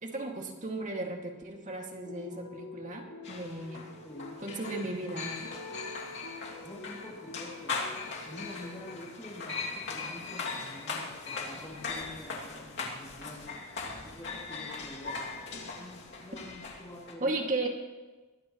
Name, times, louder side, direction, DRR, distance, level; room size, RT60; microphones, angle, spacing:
voice 1, 0.0-3.9 4.4-5.5 17.2-17.7, right 2 dB, 40° right, 1 dB, 2.3 m, -35 dB
sound 1, 2.0-8.9, left 3 dB, 85° left, 6.5 m, -47 dB
sound 2, 3.2-17.1, left 4 dB, 60° left, 2.6 m, -39 dB
voice 2, 4.0-4.4 6.6-7.8 8.2-13.6 14.0-15.4 15.8-17.7, left 1 dB, 15° left, -7 dB, 2.7 m, -47 dB
23.5 x 19.5 x 3.2 m, 1.2 s
head